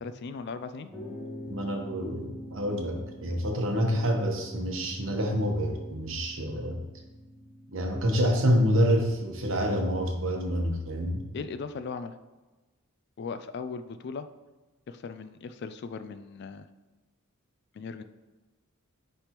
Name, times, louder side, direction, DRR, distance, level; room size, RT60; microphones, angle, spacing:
voice 1, 0.0-0.9 11.3-12.2 13.2-14.3 14.9-16.7 17.7-18.0, left 5 dB, 50° left, 11 dB, 0.3 m, -38 dB
sound 1, 0.9-8.6, equal, 5° left, 0.9 m, -45 dB
voice 2, 1.5-6.8 7.7-11.2, equal, 60° right, 2 dB, 1.0 m, -27 dB
9.9 x 3.4 x 3.0 m, 1.2 s
head